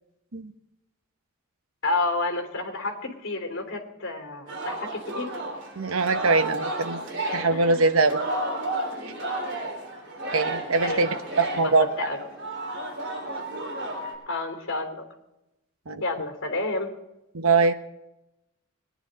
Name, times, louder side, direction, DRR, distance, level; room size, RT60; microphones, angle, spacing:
voice 1, 1.8-5.3 7.5-7.8 10.8-11.1 11.5-11.7 12.0-12.2 14.3-15.0 16.0-16.9, left 2 dB, 65° left, 3 dB, 3.2 m, -30 dB
Singing, 4.5-14.1, right 1 dB, 60° right, 3.7 m, -32 dB
voice 2, 5.8-7.0 7.3-8.2 10.3-11.1 11.4-11.9 15.9-16.0 17.3-17.7, right 3 dB, 80° right, 9 dB, 1.0 m, -22 dB
21.0 x 10.5 x 4.1 m, 0.89 s
head